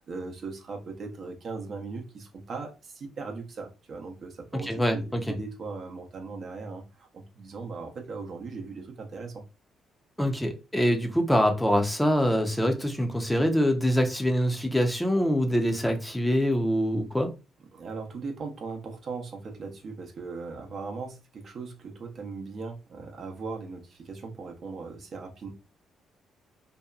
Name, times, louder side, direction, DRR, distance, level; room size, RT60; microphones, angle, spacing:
voice 1, 0.0-9.4 17.7-25.5, right 4 dB, 55° right, 0.6 m, -39 dB
voice 2, 4.6-5.4 10.2-17.3, equal, 5° left, 0.5 m, -24 dB
2.7 x 2.2 x 2.3 m
cardioid pair, 90°, 0 cm